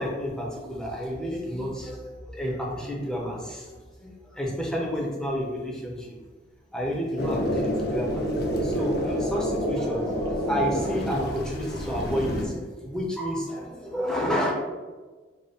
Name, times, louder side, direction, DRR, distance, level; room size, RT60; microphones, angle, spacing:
voice 1, 0.0-6.2 6.7-8.2 8.6-14.5, equal, 5° left, -2 dB, 0.6 m, -30 dB
sound 1, 7.2-12.5, equal, 55° left, 0.6 m, -28 dB
3.5 x 2.1 x 4.0 m, 1.3 s
head